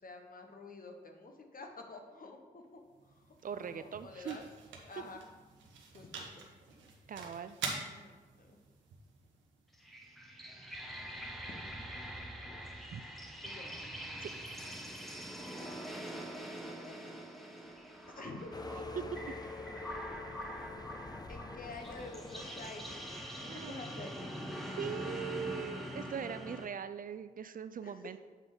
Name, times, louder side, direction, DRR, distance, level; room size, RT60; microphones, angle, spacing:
voice 1, 0.0-2.6 3.0-4.5 4.8-5.2 5.9-6.5 7.9-8.6 11.5-12.1 12.4-13.0 13.4-13.8 16.3-17.2 17.6-17.7 18.1-18.6 20.4-20.5 21.3-24.3 27.8-28.0, left 2 dB, 50° left, 4 dB, 1.3 m, -50 dB
sound 1, 2.6-10.7, right 4 dB, 85° right, 1.0 m, -47 dB
voice 2, 3.4-4.4 7.1-7.6 12.9-13.0 14.2-14.3 19.0-19.3 23.5-23.8 24.7-28.2, right 7 dB, 50° right, 11 dB, 0.4 m, -41 dB
sound 2, 9.7-26.7, equal, ahead, 1.1 m, -44 dB
sound 3, 18.5-24.1, left 3 dB, 20° left, 0.6 m, -46 dB
8.2 x 3.7 x 5.0 m, 1.3 s
supercardioid pair, 45°, 19 cm